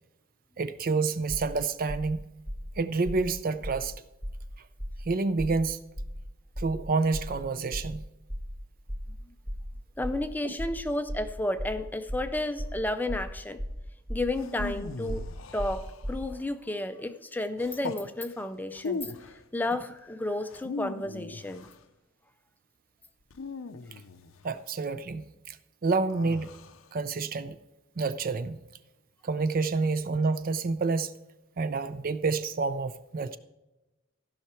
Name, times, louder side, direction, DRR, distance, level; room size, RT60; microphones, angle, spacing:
voice 1, 0.6-2.3 2.8-3.9 5.1-5.8 6.6-8.1 10.4-10.5 24.4-25.6 25.8-26.6 26.9-27.5 28.0-28.6 29.2-31.1 31.6-33.4, right 4 dB, 45° right, 0.5 m, -28 dB
sound 1, 1.3-1.5 1.9-2.1 2.4-2.7 3.0-3.3 3.6-3.9 4.2-4.5 4.8-5.0 5.4-5.6 5.9-6.2 6.5-6.8 7.1-7.4 7.7-8.0 8.3-8.5 8.9-9.1 9.4-9.7 10.0-10.2 10.6-10.8 11.1-11.3 11.6-11.8 12.1-12.3 12.6-12.8 13.1-13.3 13.6-13.8 14.1-14.3 14.6-14.8 15.1-15.3 15.6-16.3, equal, 20° right, 1.6 m, -36 dB
voice 2, 10.0-13.6 14.1-15.2 15.5-19.1 19.5-21.7, left 1 dB, 10° left, 0.4 m, -32 dB
sound 2, 14.3-16.3 17.6-18.1 18.7-19.4 20.5-21.8 23.3-24.5 26.1-26.9, left 4 dB, 80° left, 0.6 m, -39 dB
14.5 x 5.7 x 4.4 m
head